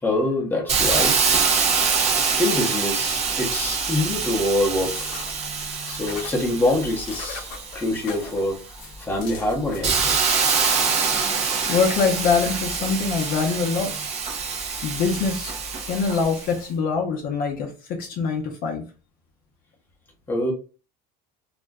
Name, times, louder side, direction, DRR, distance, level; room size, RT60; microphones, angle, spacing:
voice 1, 0.0-1.4 2.4-5.1 5.8-7.5 7.7-8.6 9.0-10.2 20.3-20.5, left 1 dB, 10° left, 0.8 m, -25 dB
Hiss, 0.7-8.3 8.8-16.5, right 5 dB, 35° right, 0.6 m, -25 dB
sound 1, 4.7-14.0, left 4 dB, 70° left, 0.9 m, -41 dB
voice 2, 11.7-13.9 14.8-15.5 15.9-18.9, left 5 dB, 45° left, 0.6 m, -24 dB
2.5 x 2.1 x 3.4 m
cardioid pair, 150°, 20 cm